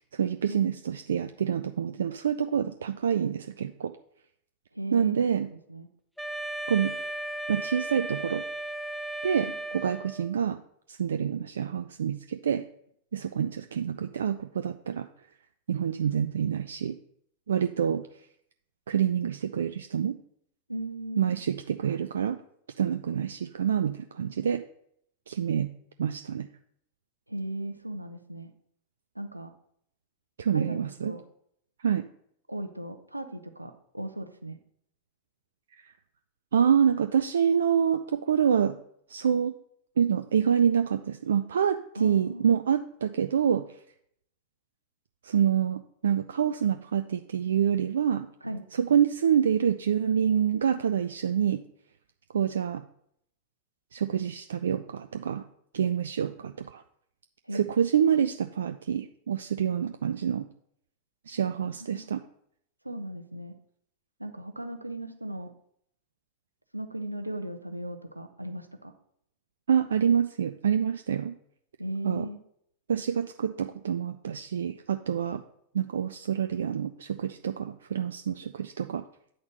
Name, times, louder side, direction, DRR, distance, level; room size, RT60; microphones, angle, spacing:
voice 1, 0.1-3.9 4.9-5.5 6.7-6.9 7.5-8.4 9.2-10.6 10.9-12.6 13.1-15.1 15.7-17.0 17.5-18.1 18.9-20.2 21.2-22.4 22.8-24.6 25.3-25.7 26.0-26.5 30.4-31.1 31.8-32.0 36.5-38.8 39.1-39.5 40.0-43.6 45.2-48.3 48.8-51.6 52.3-52.8 53.9-55.4 55.7-56.8 57.5-60.5 61.3-62.2 69.7-71.3 72.0-72.3 72.9-75.4 75.7-79.0, right 8 dB, 65° right, 8 dB, 0.4 m, -27 dB
voice 2, 4.7-5.9 9.5-9.6 20.7-21.4 27.3-28.5 29.1-29.5 30.5-31.2 32.5-34.6 42.0-42.6 48.4-48.6 57.5-57.7 61.5-61.6 61.9-62.1 62.8-63.5 64.2-65.5 66.7-68.9 71.8-72.4, right 1 dB, 85° right, 7 dB, 0.8 m, -37 dB
Wind instrument woodwind instrument, 6.2-10.4, right 2 dB, ahead, 0.4 m, -35 dB
8.8 x 4.3 x 6.5 m, 0.70 s
figure-of-eight pair, 90°, 0 cm